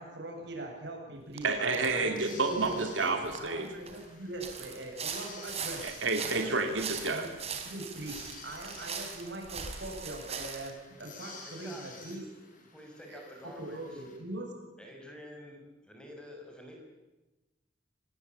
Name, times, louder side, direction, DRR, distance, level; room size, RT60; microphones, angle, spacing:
voice 1, 0.0-3.1 3.4-5.8 6.2-6.5 7.1-7.3 7.6-12.2 13.1-13.2 13.6-14.5, right 2 dB, 65° right, 0 dB, 7.7 m, -41 dB
sound 1, 1.4-1.5 1.7-2.0 2.3-4.0 4.4-10.7, right 6 dB, 35° right, 3.6 m, -40 dB
voice 2, 1.4-3.7 5.8-7.3, right 3 dB, 90° right, 5 dB, 2.7 m, -30 dB
sound 2, 2.1-14.2, left 4 dB, 45° left, 5.7 m, -52 dB
voice 3, 11.4-12.3 12.7-14.0 14.8-16.8, left 1 dB, 5° left, 1 dB, 5.7 m, -48 dB
25.5 x 19.5 x 8.7 m, 1.1 s
head